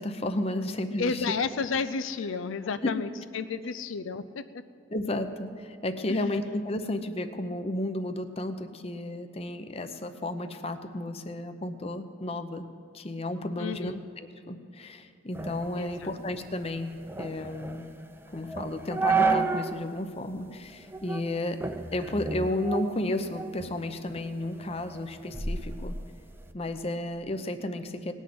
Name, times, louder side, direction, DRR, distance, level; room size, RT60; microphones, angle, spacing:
voice 1, 0.0-1.2 4.9-12.7 12.9-13.9 14.5-16.9 17.2-17.8 18.3-21.6 21.9-25.9 26.5-28.1, left 1 dB, 30° left, 8 dB, 0.8 m, -32 dB
voice 2, 1.0-4.6 6.1-6.4 13.6-14.0 15.7-16.2, left 5 dB, 85° left, 10 dB, 0.5 m, -32 dB
sound 1, 15.3-19.8 20.2-20.3 20.9-21.3 21.6-23.7 24.1-26.5, right 4 dB, 10° right, 0.6 m, -31 dB
18.5 x 6.4 x 9.3 m, 2.5 s
head